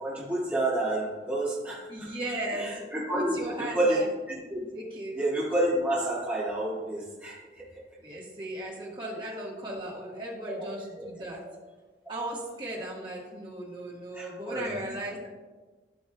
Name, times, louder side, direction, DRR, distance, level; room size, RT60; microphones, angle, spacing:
voice 1, 0.0-2.1 2.5-4.6 5.1-7.8 10.4-11.1 14.1-15.0, right 1 dB, 10° right, -9 dB, 2.1 m, -30 dB
voice 2, 1.9-4.1 4.7-5.1 8.0-11.4 12.1-15.3, right 1 dB, 25° right, -4 dB, 1.6 m, -37 dB
13.0 x 5.4 x 2.4 m, 1.3 s
head